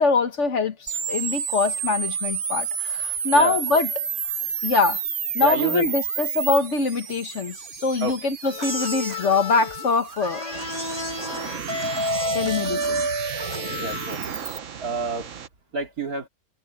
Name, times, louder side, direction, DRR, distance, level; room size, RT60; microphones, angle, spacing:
voice 1, 0.0-4.1 4.6-5.0 5.3-10.6 11.9-12.0 12.3-13.2, left 4 dB, 55° left, 1.6 m, -23 dB
sound 1, 0.9-14.6, right 7 dB, 45° right, 0.8 m, -32 dB
voice 2, 5.4-5.9 8.0-8.1 13.8-14.4 14.8-15.3 15.7-16.3, right 3 dB, 85° right, 2.9 m, -28 dB
sound 2, 8.4-14.3, equal, 15° right, 3.0 m, -29 dB
sound 3, 10.5-15.5, right 7 dB, 60° right, 1.4 m, -35 dB
omnidirectional pair, 1.5 m